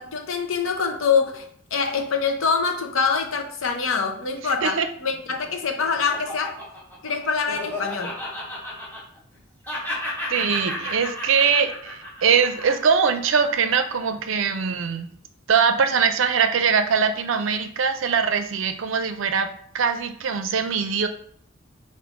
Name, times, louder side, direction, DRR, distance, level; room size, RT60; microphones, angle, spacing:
voice 1, 0.0-6.6 7.0-8.2, left 5 dB, 80° left, 4 dB, 0.7 m, -25 dB
voice 2, 4.4-4.9 10.3-15.1 15.5-19.5 19.7-21.1, right 6 dB, 70° right, 8 dB, 0.5 m, -22 dB
Laughter, 5.1-9.4 9.6-14.1, left 1 dB, 10° left, 1.1 m, -34 dB
5.0 x 2.5 x 3.5 m, 0.62 s
head